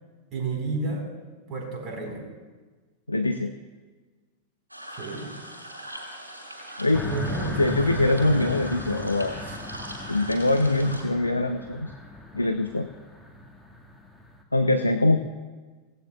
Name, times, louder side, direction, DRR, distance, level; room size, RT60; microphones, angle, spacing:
voice 1, 0.3-1.0 1.5-2.2 5.0-5.3 6.7-8.4 9.4-9.6, right 4 dB, 35° right, 1 dB, 4.1 m, -31 dB
voice 2, 3.1-3.5 6.8-7.1 7.6-9.4 10.1-11.9 12.3-12.9 14.5-15.2, left 2 dB, 85° left, 8 dB, 0.5 m, -23 dB
sound 1, 4.7-11.0, right 1 dB, 85° right, 3.2 m, -41 dB
sound 2, 6.9-14.4, left 2 dB, ahead, 1.7 m, -38 dB
25.5 x 17.0 x 2.3 m, 1.3 s
figure-of-eight pair, 90°, 0 cm